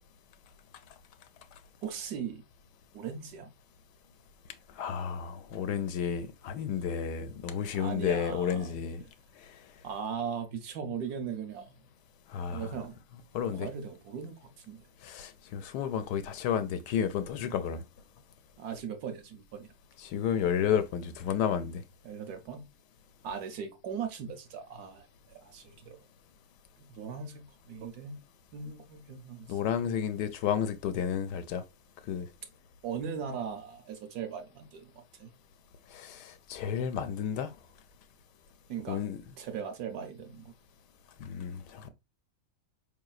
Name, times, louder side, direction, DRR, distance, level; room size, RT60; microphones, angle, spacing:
voice 1, 1.8-2.4 2.9-3.5 7.7-8.7 9.0-9.1 9.8-11.9 12.5-13.0 13.5-14.8 18.6-19.7 22.0-22.7 23.2-25.1 25.4-26.0 26.8-28.2 28.5-29.9 32.8-35.3 38.7-39.0 39.4-40.5, right 7 dB, 70° right, 1.1 m, -39 dB
voice 2, 4.8-9.0 12.3-12.7 13.3-13.7 15.0-17.8 20.0-21.8 29.5-31.6 32.1-32.3 35.9-37.5 38.9-39.2 41.2-41.9, left 8 dB, 75° left, 1.1 m, -31 dB
4.7 x 3.1 x 2.3 m
omnidirectional pair, 1.9 m